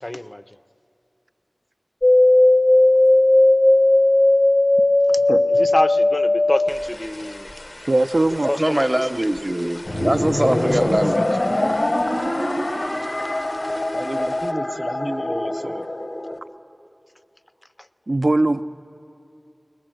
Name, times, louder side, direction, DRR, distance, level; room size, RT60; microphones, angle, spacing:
voice 1, 0.0-0.4 5.1-5.2 5.5-7.5 8.5-8.9, left 1 dB, 35° left, 12 dB, 0.5 m, -26 dB
sound 1, 2.0-11.4 11.7-12.6 12.9-13.8 14.2-14.3, left 1 dB, 70° left, 0.7 m, -17 dB
voice 2, 7.9-8.5 18.1-18.6, right 2 dB, 65° right, 9 dB, 0.4 m, -19 dB
voice 3, 8.4-11.4 13.9-15.9, right 1 dB, 25° right, 8 dB, 0.7 m, -24 dB
sound 2, 9.9-16.4, left 1 dB, 85° left, 1.2 m, -24 dB
21.0 x 19.0 x 7.8 m, 2.7 s
wide cardioid pair, 50°, 0 cm